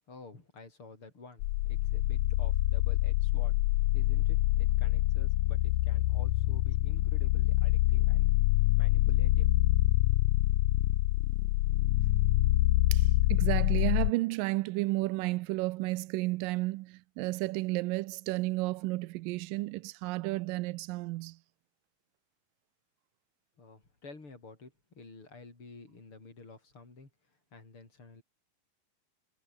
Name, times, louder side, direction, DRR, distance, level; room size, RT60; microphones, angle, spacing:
voice 1, 0.1-3.6 3.9-8.2 8.8-9.5 23.6-28.2, left 3 dB, 40° left, 7.0 m, -51 dB
sound 1, 1.4-14.1, left 17 dB, 75° left, 2.1 m, -26 dB
voice 2, 12.9-21.4, right 20 dB, 85° right, 2.3 m, -32 dB
omnidirectional pair, 3.9 m